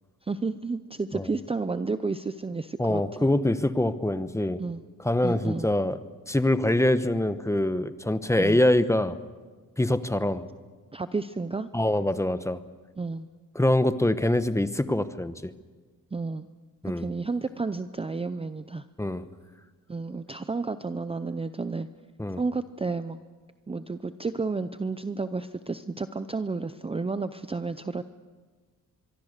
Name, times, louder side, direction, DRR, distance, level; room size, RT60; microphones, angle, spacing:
voice 1, 0.2-3.0 4.6-4.8 5.2-5.7 8.4-8.6 10.9-11.7 13.0-13.3 16.1-16.5 16.9-18.8 19.9-21.9 22.4-23.2 23.7-28.0, right 3 dB, 15° right, 11 dB, 0.6 m, -31 dB
voice 2, 2.8-4.6 5.0-6.0 6.3-9.2 9.8-10.4 11.7-12.6 13.5-15.5 16.8-17.1 19.0-19.2 22.2-22.4, left 1 dB, 10° left, 12 dB, 1.0 m, -24 dB
25.0 x 23.5 x 6.7 m, 1.4 s
wide cardioid pair, 120°, 34 cm